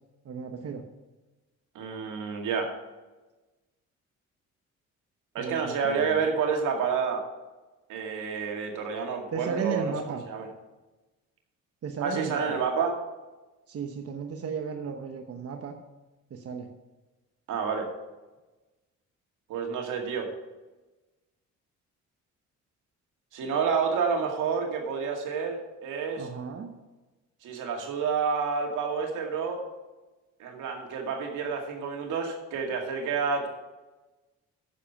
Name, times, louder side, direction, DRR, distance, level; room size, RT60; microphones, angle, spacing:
voice 1, 0.2-0.8 5.4-6.2 9.3-10.2 11.8-12.6 13.7-15.7 16.3-16.7 26.2-26.7, right 6 dB, 50° right, 3 dB, 1.1 m, -35 dB
voice 2, 1.7-2.7 5.3-7.2 7.9-10.5 12.0-13.0 17.5-17.9 19.5-20.3 23.3-26.3 27.4-29.6 30.4-33.5, right 5 dB, 85° right, 2 dB, 2.2 m, -29 dB
10.0 x 7.4 x 5.8 m, 1.1 s
cardioid pair, 90°, 30 cm